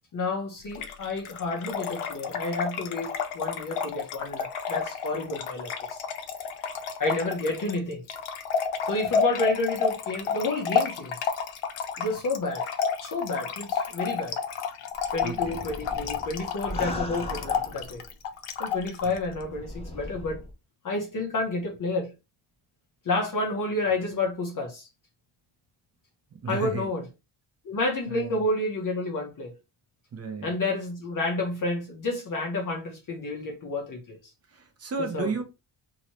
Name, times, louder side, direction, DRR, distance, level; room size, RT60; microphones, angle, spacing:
voice 1, 0.1-6.0 7.0-8.0 8.9-11.2 12.0-12.6 13.0-14.4 15.1-18.0 18.6-20.4 20.8-22.1 23.0-24.9 26.5-27.0 27.6-29.5 30.4-34.2 35.1-35.4, left 2 dB, 40° left, 0.9 m, -30 dB
Trickle dribble / Fill (with liquid), 0.7-19.2, left 6 dB, 85° left, 0.7 m, -31 dB
sound 1, 14.9-18.1 18.8-20.5, left 1 dB, 15° left, 0.4 m, -39 dB
voice 2, 15.2-15.6 19.0-19.1 26.3-26.9 28.1-28.5 30.1-30.5 34.5-35.4, right 4 dB, 30° right, 0.6 m, -33 dB
2.9 x 2.7 x 3.0 m
cardioid pair, 155°, 50 cm